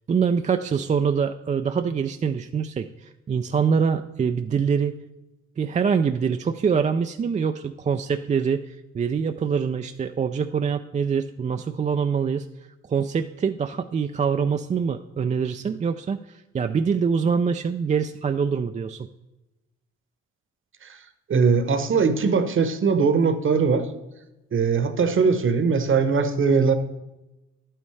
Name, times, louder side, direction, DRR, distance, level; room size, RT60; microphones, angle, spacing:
voice 1, 0.1-4.9 5.6-12.5 12.9-19.1, right 6 dB, 25° right, 8 dB, 0.3 m, -24 dB
voice 2, 21.3-23.9 24.5-26.7, right 5 dB, 40° right, 10 dB, 1.0 m, -20 dB
10.5 x 9.0 x 3.2 m, 1.0 s
cardioid pair, 90°, 30 cm